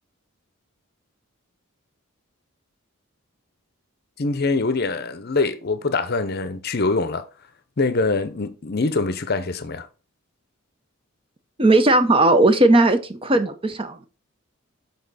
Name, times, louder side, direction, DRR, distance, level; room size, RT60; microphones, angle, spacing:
voice 1, 4.2-7.3 7.8-9.9, left 3 dB, 45° left, 0.7 m, -24 dB
voice 2, 11.6-14.0, right 2 dB, 25° right, 0.6 m, -17 dB
7.5 x 4.1 x 4.1 m
head